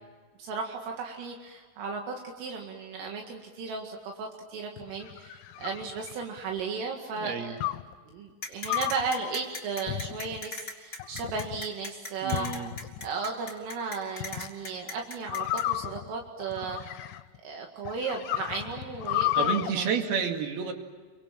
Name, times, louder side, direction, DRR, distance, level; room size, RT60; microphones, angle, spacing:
voice 1, 0.4-7.6 8.1-12.5 13.0-16.8 17.4-20.0, right 4 dB, 75° right, 1 dB, 4.6 m, -35 dB
sound 1, 4.8-6.6 7.6-7.9 8.6-9.1 9.9-10.4 11.0-11.6 12.3-13.1 14.2-14.5 15.3-17.4 17.8-19.7, left 15 dB, 80° left, 3.3 m, -32 dB
voice 2, 7.2-7.5 12.2-12.7 19.4-20.7, right 6 dB, 55° right, 4 dB, 3.7 m, -30 dB
sound 2, 8.4-15.6, left 3 dB, 20° left, 2.5 m, -39 dB
29.5 x 24.5 x 7.5 m, 1.5 s
omnidirectional pair, 5.9 m